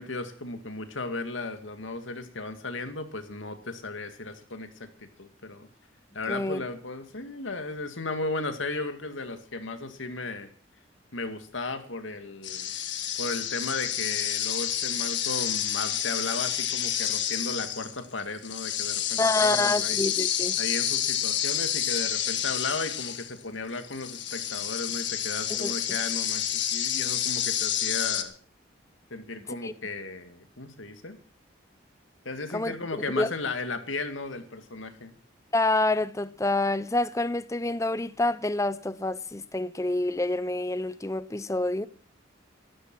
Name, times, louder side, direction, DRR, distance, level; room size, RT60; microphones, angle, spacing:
voice 1, 0.0-5.7 6.1-10.5 11.1-12.7 13.2-20.0 20.6-28.3 29.1-31.2 32.3-35.1, left 3 dB, 80° left, 2.2 m, -35 dB
voice 2, 6.3-6.6 19.2-20.6 25.5-25.7 29.6-29.7 32.5-32.7 33.2-33.3 35.5-41.9, left 2 dB, 15° left, 0.6 m, -27 dB
sound 1, 12.4-23.4 23.8-28.2, left 10 dB, 65° left, 1.6 m, -29 dB
14.5 x 13.5 x 6.2 m
head